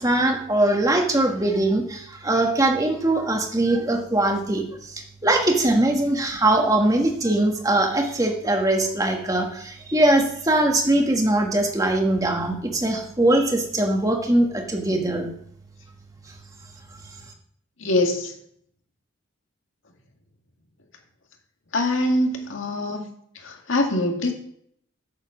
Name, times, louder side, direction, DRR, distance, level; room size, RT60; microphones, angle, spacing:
voice 1, 0.0-15.3, right 1 dB, 15° right, 2 dB, 1.4 m, -21 dB
voice 2, 17.8-18.3 21.7-23.1 23.4-24.3, left 1 dB, 70° left, 3 dB, 1.9 m, -23 dB
8.7 x 7.1 x 7.1 m, 0.68 s
head